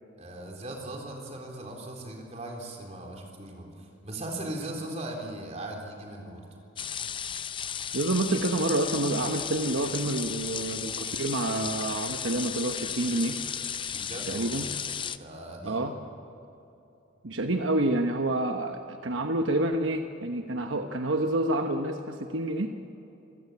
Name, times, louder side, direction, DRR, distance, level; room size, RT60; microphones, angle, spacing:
voice 1, 0.2-6.4 13.9-14.7 15.2-15.9, right 1 dB, 35° right, 1 dB, 3.8 m, -39 dB
sound 1, 6.8-15.2, left 8 dB, 25° left, 0.5 m, -34 dB
voice 2, 7.9-13.4 14.3-14.7 15.6-15.9 17.2-22.7, right 2 dB, 75° right, 5 dB, 1.1 m, -28 dB
26.0 x 16.0 x 8.5 m, 2.9 s
head